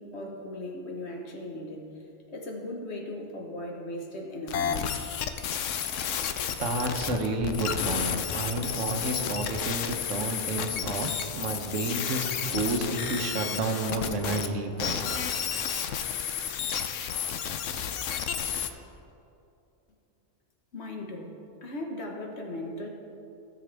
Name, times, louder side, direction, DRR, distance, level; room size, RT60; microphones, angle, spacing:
voice 1, 0.0-2.0 2.3-4.8 20.7-22.9, left 1 dB, 60° left, 1 dB, 1.5 m, -38 dB
sound 1, 4.5-14.5 14.8-18.7, left 8 dB, 85° left, 1.0 m, -31 dB
voice 2, 6.6-11.1 11.4-15.4, right 2 dB, 90° right, 4 dB, 1.3 m, -31 dB
16.5 x 6.8 x 3.4 m, 2.7 s
omnidirectional pair, 1.3 m